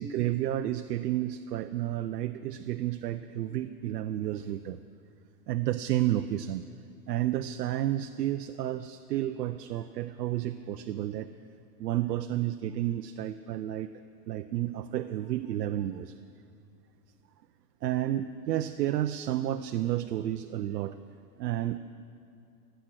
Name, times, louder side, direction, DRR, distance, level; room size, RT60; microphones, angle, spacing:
voice 1, 0.0-4.8 5.5-6.6 7.1-11.3 11.8-13.9 14.3-16.1 17.8-20.9 21.4-21.8, right 13 dB, 75° right, 9 dB, 0.7 m, -31 dB
24.0 x 9.0 x 6.2 m, 2.6 s
hypercardioid pair, 140°, 49 cm